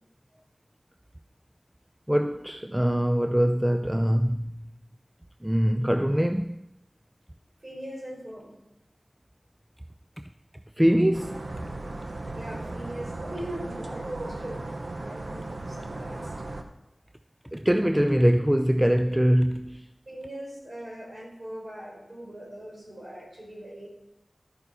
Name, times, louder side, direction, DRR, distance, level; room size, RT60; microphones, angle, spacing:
voice 1, 2.1-4.7 5.4-6.6 10.8-11.6 17.5-19.9, equal, 10° right, 0.4 m, -23 dB
voice 2, 7.6-8.6 12.3-16.3 20.1-23.9, right 1 dB, 50° right, 4.2 m, -40 dB
sound 1, 11.1-16.6, right 2 dB, 70° right, 0.9 m, -36 dB
12.0 x 9.2 x 4.2 m
wide cardioid pair, 60°, 0 cm